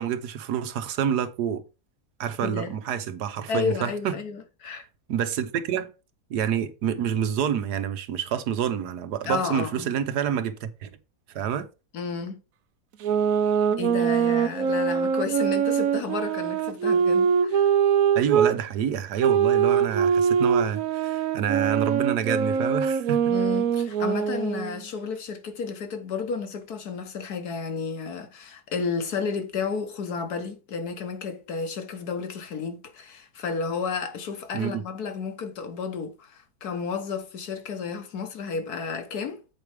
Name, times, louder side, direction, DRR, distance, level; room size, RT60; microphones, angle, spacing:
voice 1, 0.0-1.6 2.2-4.2 4.7-4.8 5.1-5.9 6.3-10.9 11.3-11.7 18.1-23.3 34.5-34.8, right 8 dB, 80° right, 1.4 m, -28 dB
voice 2, 2.4-2.7 3.5-4.8 9.3-9.9 11.9-12.4 13.8-17.7 23.3-39.4, left 5 dB, 70° left, 1.6 m, -32 dB
sound 1, 13.0-18.5 19.2-24.8, right 7 dB, 65° right, 1.0 m, -23 dB
7.6 x 4.7 x 4.9 m
omnidirectional pair, 1.7 m